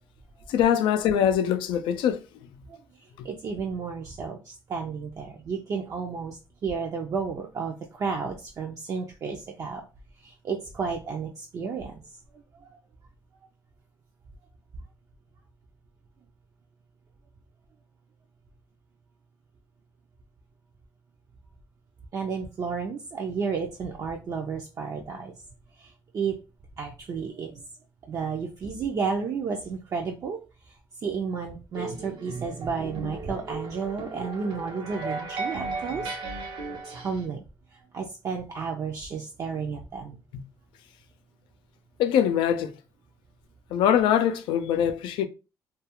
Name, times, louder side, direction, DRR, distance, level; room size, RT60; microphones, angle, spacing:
voice 1, 0.5-2.2 42.0-42.7 43.7-45.3, left 9 dB, 85° left, 0.4 m, -23 dB
voice 2, 2.7-9.9 10.2-12.0 12.5-12.8 22.1-25.3 25.8-26.4 26.8-27.6 28.0-30.4 30.7-37.4 37.7-40.2, right 5 dB, 45° right, 0.4 m, -32 dB
sound 1, 31.8-37.3, right 3 dB, 85° right, 0.7 m, -35 dB
2.3 x 2.3 x 2.8 m
cardioid pair, 110°, 8 cm